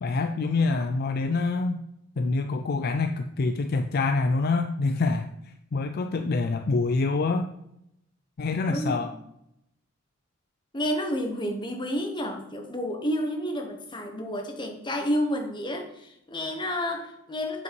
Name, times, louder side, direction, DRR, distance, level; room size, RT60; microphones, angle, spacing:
voice 1, 0.0-1.8 2.2-5.3 5.7-7.5 8.4-9.2, left 3 dB, 50° left, 6 dB, 0.4 m, -26 dB
voice 2, 8.7-9.1 10.7-17.6, equal, 25° left, 4 dB, 1.1 m, -30 dB
8.0 x 5.4 x 4.7 m, 0.82 s
head